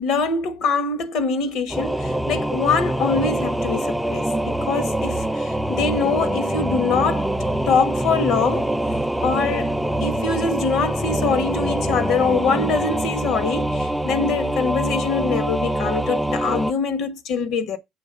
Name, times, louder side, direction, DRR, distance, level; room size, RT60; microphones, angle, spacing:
voice 1, 0.0-7.3 7.7-8.7 9.2-9.7 10.0-17.8, left 5 dB, 65° left, 1.2 m, -24 dB
Singing / Musical instrument, 1.7-16.7, right 1 dB, 5° right, 0.6 m, -24 dB
7.2 x 3.2 x 5.4 m
supercardioid pair, 70°, 0 cm